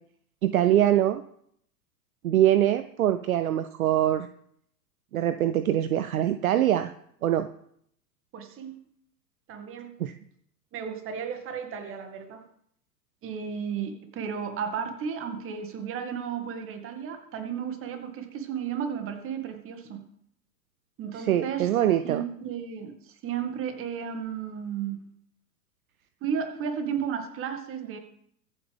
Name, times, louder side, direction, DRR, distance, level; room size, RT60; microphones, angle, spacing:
voice 1, 0.4-1.2 2.2-4.3 5.1-6.9 7.2-7.5 10.0-10.1 21.2-22.2, right 12 dB, 55° right, 11 dB, 0.8 m, -23 dB
voice 2, 8.3-8.8 9.5-9.9 10.7-12.4 13.2-20.0 21.0-21.7 22.0-25.0 26.2-28.0, right 7 dB, 25° right, 6 dB, 2.1 m, -33 dB
23.5 x 8.4 x 3.5 m, 0.68 s
figure-of-eight pair, 100°, 50 cm